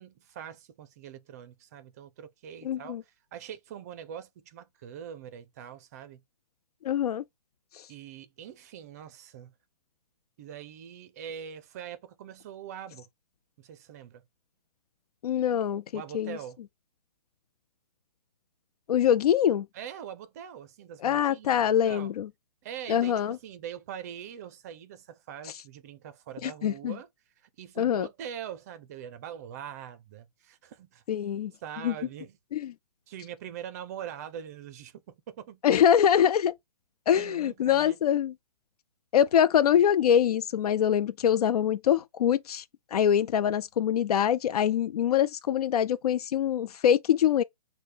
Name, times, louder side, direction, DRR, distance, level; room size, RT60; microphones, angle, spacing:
voice 1, 0.0-6.2 7.9-9.5 10.4-13.1 13.6-14.2 15.9-16.6 19.7-22.1 22.6-27.1 27.4-31.0 31.6-32.4 33.1-35.6 37.1-38.0, right 9 dB, 25° right, 0.5 m, -43 dB
voice 2, 2.6-3.0 6.8-7.2 7.7-7.9 15.2-16.4 18.9-19.7 21.0-22.3 22.9-23.4 26.4-27.0 27.8-28.1 31.1-31.5 31.8-31.9 32.5-32.7 35.6-36.6 37.1-38.3 39.1-42.6 42.9-47.4, left 9 dB, 80° left, 0.4 m, -24 dB
6.3 x 2.2 x 3.3 m
hypercardioid pair, 160°, 19 cm